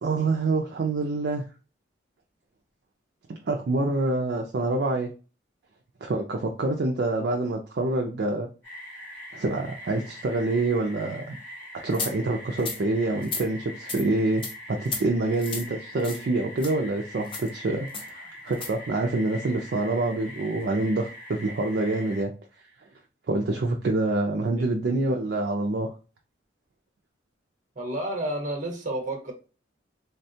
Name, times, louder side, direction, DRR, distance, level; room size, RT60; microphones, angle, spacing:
voice 1, 0.0-1.4 3.3-5.1 6.0-8.5 9.3-11.4 11.8-14.4 14.7-22.3 23.3-25.9, right 2 dB, 55° right, 2 dB, 0.4 m, -26 dB
sound 1, 8.6-22.2, equal, 10° left, 1.4 m, -43 dB
sound 2, 11.9-12.1 12.6-12.8 13.2-13.4 13.9-14.0 14.4-14.5 14.8-15.0 15.4-15.7 16.0-16.2 16.6-16.7 17.3-17.5 17.9-18.1 18.5-18.7, left 4 dB, 25° left, 0.5 m, -33 dB
voice 2, 27.7-29.3, right 1 dB, 40° right, 2 dB, 1.0 m, -30 dB
3.5 x 2.2 x 2.6 m, 0.35 s
head